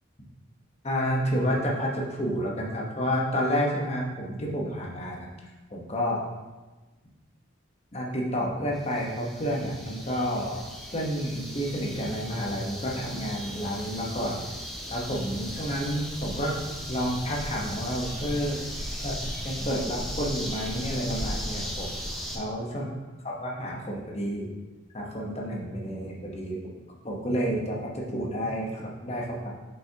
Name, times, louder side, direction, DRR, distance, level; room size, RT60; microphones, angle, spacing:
voice 1, 0.8-5.3 5.7-6.2 7.9-10.6 10.9-14.4 14.9-16.6 16.9-18.6 19.0-19.2 19.4-21.9 22.3-22.9 23.4-24.5 24.9-26.6 27.0-29.5, equal, 30° left, -2 dB, 1.0 m, -30 dB
sound 1, 8.7-22.4, equal, ahead, 0.6 m, -37 dB
7.2 x 5.6 x 2.8 m, 1.2 s
head